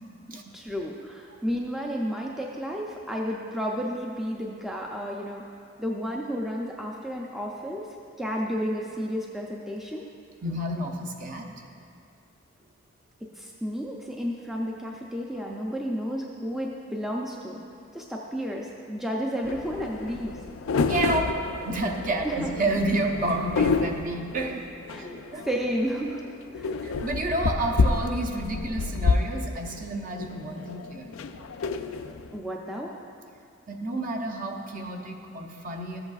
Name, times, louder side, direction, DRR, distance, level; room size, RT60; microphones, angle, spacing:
voice 1, 0.5-5.4 5.8-7.9 8.2-10.1 13.4-17.6 17.9-20.3 22.2-22.5 24.9-25.2 25.5-26.3 26.6-26.8 32.3-32.9, equal, ahead, -2 dB, 0.4 m, -32 dB
voice 2, 10.4-11.6 20.7-21.3 21.6-24.6 24.9-25.4 26.8-31.2 33.7-36.0, right 2 dB, 40° right, 1 dB, 0.7 m, -30 dB
sound 1, 19.4-32.4, left 4 dB, 85° left, 0.4 m, -29 dB
14.0 x 7.9 x 2.4 m, 2.4 s
head